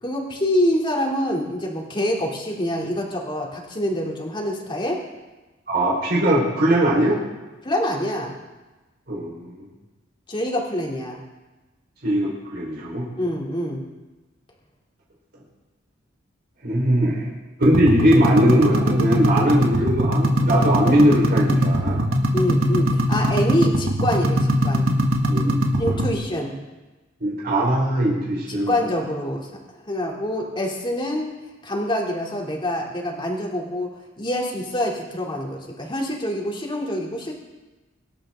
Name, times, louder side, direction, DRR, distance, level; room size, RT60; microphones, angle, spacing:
voice 1, 0.0-5.0 7.6-8.3 10.3-11.2 13.2-13.8 22.3-24.9 25.8-26.5 28.5-31.3 31.6-37.4, left 1 dB, 25° left, -1 dB, 3.1 m, -26 dB
voice 2, 5.7-7.2 9.1-9.7 12.0-13.1 16.6-17.3 17.6-22.0 25.3-25.6 25.8-25.9 27.2-28.8, right 1 dB, 50° right, -5 dB, 4.6 m, -20 dB
sound 1, 17.6-26.1, equal, 80° right, 1.7 m, -21 dB
25.0 x 12.5 x 3.8 m, 1.1 s
head